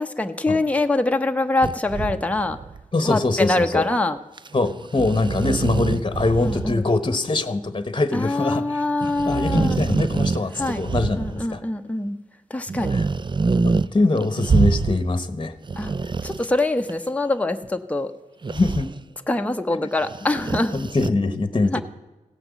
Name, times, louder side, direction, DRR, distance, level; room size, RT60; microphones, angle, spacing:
voice 1, 0.0-2.6 3.0-4.2 6.4-6.8 8.1-9.9 10.5-10.8 11.2-12.2 12.5-13.0 15.8-15.9 16.2-18.1 19.3-20.8 21.7-21.8, left 2 dB, 10° left, 6 dB, 0.8 m, -24 dB
sound 1, 1.6-2.8 4.4-4.6 4.8-6.8 7.1-7.2 9.0-11.6 12.7-13.9 14.2-15.1 15.5-16.9 18.4-18.9 20.0-21.1, right 4 dB, 35° right, 0.4 m, -25 dB
voice 2, 2.9-3.8 4.5-11.6 12.9-13.0 13.6-15.5 18.5-18.9 20.7-21.8, left 2 dB, 35° left, 12 dB, 1.1 m, -23 dB
16.5 x 6.0 x 8.2 m, 1.1 s
cardioid pair, 55°, 14 cm